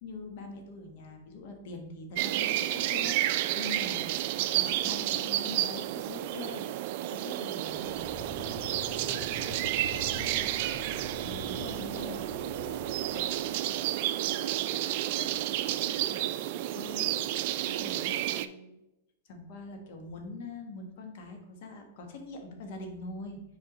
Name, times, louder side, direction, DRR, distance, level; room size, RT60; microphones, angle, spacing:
voice 1, 0.0-4.1 4.5-6.6 7.1-7.9 11.2-12.2 14.7-15.4 15.9-16.0 16.7-17.0 17.7-18.2 19.3-23.4, left 3 dB, 60° left, 4 dB, 1.2 m, -43 dB
sound 1, 2.2-18.5, right 13 dB, 55° right, 0.3 m, -31 dB
sound 2, 7.7-14.1, left 3 dB, 20° left, 0.5 m, -45 dB
voice 2, 8.8-11.8 12.0-15.3 15.7-17.7 18.2-18.7, right 3 dB, 25° right, 0 dB, 2.0 m, -48 dB
4.8 x 4.5 x 5.0 m, 0.91 s
hypercardioid pair, 130°, 0 cm